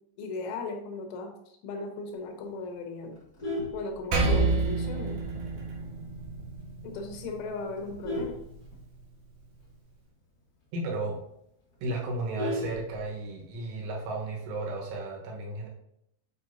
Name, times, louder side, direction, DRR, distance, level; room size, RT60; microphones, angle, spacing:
voice 1, 0.2-1.3 1.6-3.2 3.7-5.2 6.8-8.4, left 3 dB, 90° left, 4 dB, 3.5 m, -37 dB
Vehicle horn car horn honking, 3.1-4.6 5.1-5.3 5.6-5.7 6.2-6.3 6.5-6.9 7.5-9.3 9.7-9.8 10.0-10.1 10.6-10.7 11.0-11.1 11.4-13.4 14.6-15.0, left 1 dB, 70° left, 0.9 m, -36 dB
Percussion, 4.1-8.9, right 3 dB, 65° right, 2.2 m, -30 dB
voice 2, 10.7-11.2 11.8-15.7, right 2 dB, 90° right, -1 dB, 3.9 m, -34 dB
8.4 x 4.8 x 2.8 m, 0.76 s
omnidirectional pair, 5.4 m